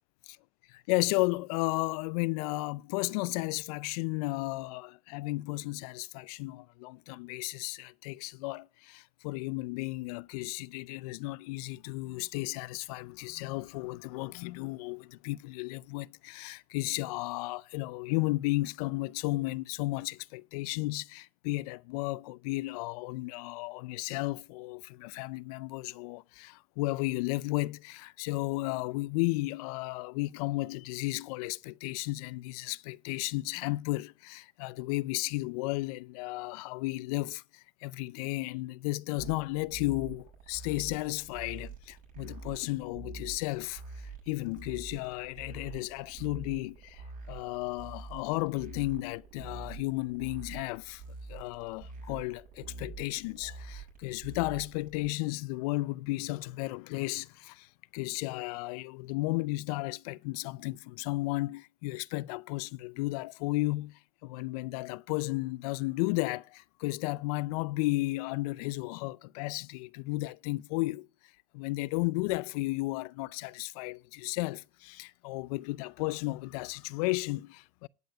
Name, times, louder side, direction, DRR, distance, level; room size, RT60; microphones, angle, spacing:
voice 1, 0.7-43.8 44.3-51.0 51.3-71.1 71.5-77.9, left 21 dB, 80° left, 0.5 m, -34 dB
sound 1, 39.2-55.1, right 4 dB, 45° right, 6.9 m, -46 dB
20.0 x 8.6 x 2.4 m
hypercardioid pair, 80°, 19 cm